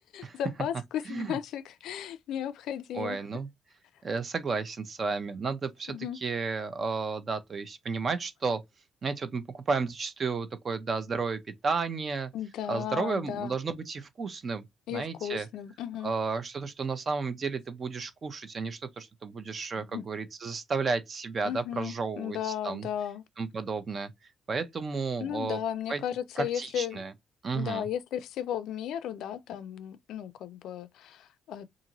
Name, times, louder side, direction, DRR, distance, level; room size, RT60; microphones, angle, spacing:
voice 1, 0.1-3.2 5.9-6.2 12.3-13.5 14.9-16.1 19.8-20.0 21.4-23.2 25.2-27.0 27.5-31.7, left 10 dB, 85° left, 0.3 m, -35 dB
voice 2, 1.1-1.4 2.9-3.5 4.0-8.6 9.0-12.3 12.7-14.7 14.9-15.5 16.0-22.9 23.4-24.1 24.5-25.6 25.9-26.0 26.4-27.1 27.4-27.9, right 4 dB, 45° right, 0.6 m, -32 dB
2.6 x 2.5 x 2.8 m
cardioid pair, 90°, 0 cm